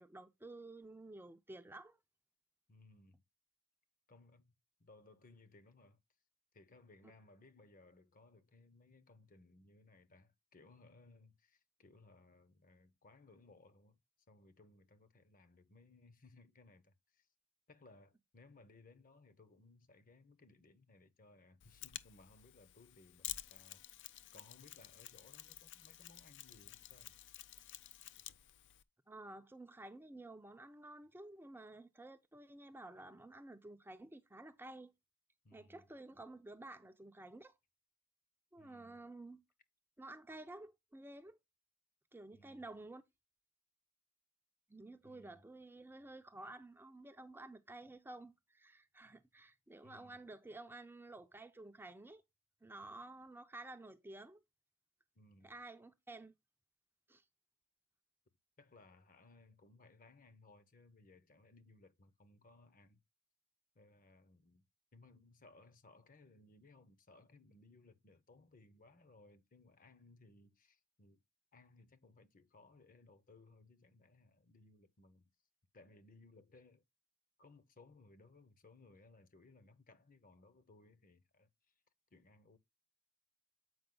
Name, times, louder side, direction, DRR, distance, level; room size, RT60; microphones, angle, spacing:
voice 1, 0.0-2.0 29.1-34.9 35.5-37.5 38.5-39.4 40.0-41.4 42.1-43.0 44.7-52.2 52.6-54.4 55.4-56.3 57.1-57.2, right 2 dB, 10° right, 0.5 m, -52 dB
voice 2, 2.7-3.2 4.1-4.5 4.8-6.0 6.5-14.0 14.3-17.3 17.7-23.9 24.3-27.1 35.4-35.9 38.6-39.0 42.3-42.6 45.0-45.5 49.8-50.2 55.1-55.6 58.6-63.0 63.7-64.6 64.9-71.2 71.5-75.3 75.7-76.8 77.4-81.5 82.1-82.6, left 2 dB, 40° left, 0.9 m, -63 dB
Mechanisms, 21.6-28.8, left 13 dB, 55° left, 0.5 m, -51 dB
7.9 x 5.1 x 3.8 m
head